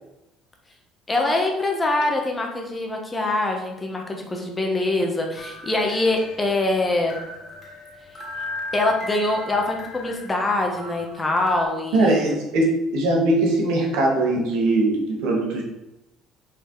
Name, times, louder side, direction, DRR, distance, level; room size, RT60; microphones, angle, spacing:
voice 1, 1.1-7.2 8.7-12.3, left 2 dB, 15° left, 1 dB, 1.1 m, -24 dB
sound 1, 5.4-11.6, left 1 dB, 35° left, 1.3 m, -37 dB
voice 2, 11.9-15.6, right 2 dB, 85° right, -1 dB, 1.7 m, -21 dB
5.3 x 4.4 x 4.6 m, 0.94 s
cardioid pair, 130°, 0 cm